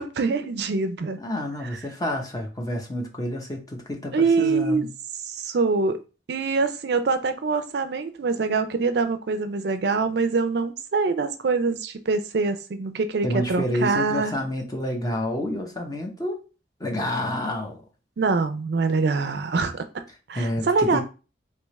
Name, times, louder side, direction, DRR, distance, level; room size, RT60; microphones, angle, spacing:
voice 1, 0.0-1.2 4.1-4.9 5.2-6.0 6.3-14.3 18.2-20.0 20.3-21.0, right 4 dB, 65° right, 0.4 m, -24 dB
voice 2, 1.2-4.9 13.2-16.4 16.8-17.8 20.3-21.0, left 1 dB, 20° left, 0.7 m, -29 dB
3.4 x 2.8 x 3.1 m
head